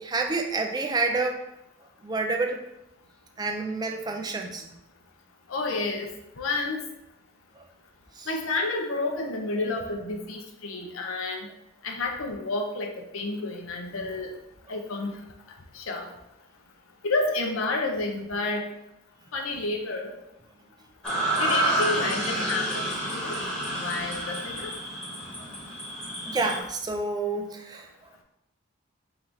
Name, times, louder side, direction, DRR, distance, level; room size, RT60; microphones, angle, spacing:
voice 1, 0.0-1.4 2.0-2.6 3.4-4.7 7.6-7.7 8.2-8.3 25.4-25.5 26.3-27.9, right 3 dB, 20° right, 3 dB, 0.3 m, -29 dB
voice 2, 5.5-6.1 6.4-6.8 8.3-11.5 11.8-14.3 14.7-15.1 15.7-16.1 17.0-18.6 19.3-20.1 21.4-23.4 23.7-24.8, left 3 dB, 85° left, 2 dB, 0.7 m, -30 dB
sound 1, 21.0-26.6, right 1 dB, 5° left, 1.1 m, -29 dB
3.8 x 2.7 x 4.5 m, 0.85 s
head